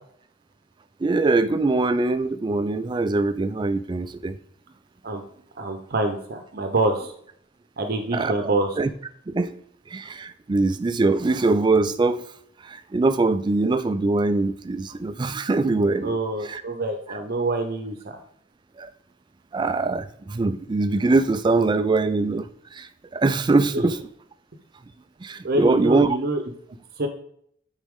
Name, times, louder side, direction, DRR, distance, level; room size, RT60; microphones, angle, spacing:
voice 1, 1.0-4.4 8.1-8.3 8.8-8.9 9.3-9.6 9.9-12.3 12.6-16.2 16.5-16.6 18.8-18.9 19.5-24.0 25.2-26.2, right 3 dB, 25° right, 12 dB, 0.3 m, -22 dB
voice 2, 5.6-7.1 7.8-8.8 16.0-18.2 25.4-26.4 27.0-27.1, right 2 dB, 50° right, 5 dB, 0.7 m, -26 dB
9.3 x 4.1 x 3.6 m, 0.65 s
head